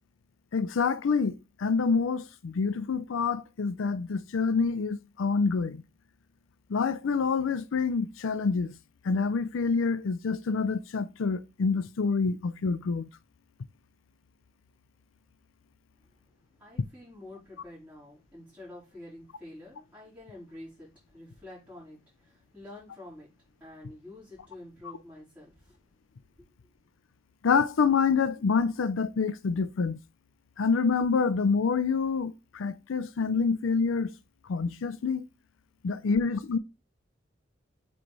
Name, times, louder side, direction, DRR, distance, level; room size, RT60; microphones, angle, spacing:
voice 1, 0.5-5.8 6.7-8.7 9.0-13.1 27.4-30.0 30.6-34.1 34.5-35.3 35.8-36.6, left 5 dB, 80° left, 0.5 m, -27 dB
voice 2, 16.6-23.3 23.6-25.8, left 1 dB, 10° right, 3.9 m, -48 dB
7.6 x 3.2 x 4.0 m
head